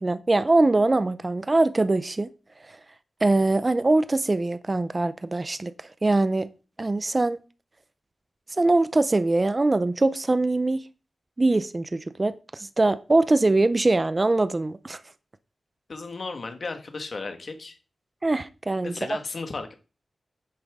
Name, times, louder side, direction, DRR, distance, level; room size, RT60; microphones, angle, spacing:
voice 1, 0.0-2.3 2.7-2.8 3.2-5.7 6.0-6.5 6.8-7.4 8.6-10.8 11.4-15.0 18.2-18.9, right 2 dB, 25° right, 0.5 m, -22 dB
voice 2, 15.9-17.8 18.8-19.7, left 3 dB, 50° left, 1.6 m, -35 dB
10.0 x 8.7 x 3.6 m
wide cardioid pair, 160°, 0 cm